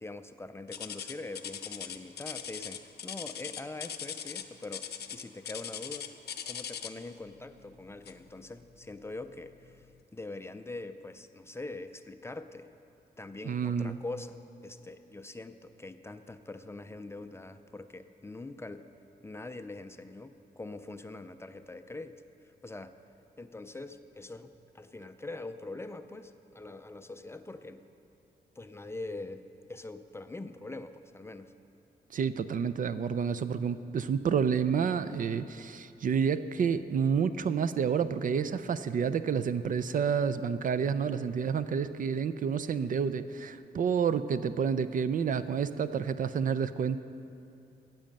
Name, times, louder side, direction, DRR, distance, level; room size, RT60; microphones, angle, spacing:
voice 1, 0.0-6.1 6.5-9.9 10.1-12.7 13.2-14.4 14.6-18.9 19.2-22.2 22.6-22.9 23.4-27.8 28.6-29.4 29.7-31.5, left 2 dB, 15° left, 9 dB, 0.4 m, -43 dB
sound 1, 0.7-7.1 8.0-8.3 8.9-9.0 9.6-9.7, left 9 dB, 75° left, 0.6 m, -40 dB
voice 2, 13.4-14.0 32.1-47.0, right 6 dB, 50° right, 13 dB, 0.4 m, -29 dB
16.5 x 7.6 x 5.3 m, 2.7 s
wide cardioid pair, 120°, 17 cm